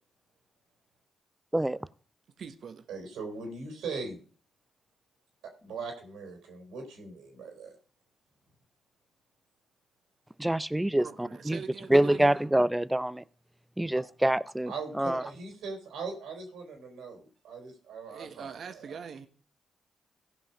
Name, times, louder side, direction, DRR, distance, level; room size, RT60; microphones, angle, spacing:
voice 1, 2.4-2.9 11.0-12.4 18.1-19.3, right 6 dB, 65° right, 1.3 m, -43 dB
voice 2, 2.9-4.2 5.6-7.8 14.7-19.0, right 4 dB, 85° right, 3.1 m, -40 dB
voice 3, 10.4-11.6 11.9-13.2 13.8-15.2, right 1 dB, 10° right, 0.6 m, -26 dB
15.5 x 5.5 x 5.4 m
supercardioid pair, 50°, 0 cm